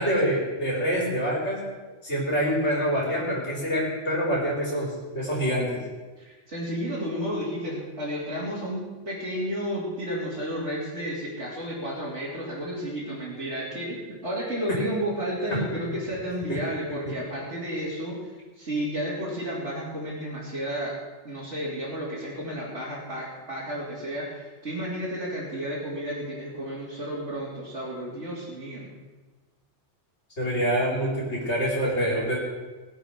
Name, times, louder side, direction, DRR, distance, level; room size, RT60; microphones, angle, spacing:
voice 1, 0.0-1.6 2.0-5.8 16.5-16.6 30.4-32.4, equal, 65° left, -4 dB, 4.2 m, -26 dB
voice 2, 6.2-20.9 21.2-29.0, equal, 65° right, -9 dB, 3.6 m, -32 dB
20.0 x 8.1 x 6.3 m, 1.3 s
omnidirectional pair, 1.3 m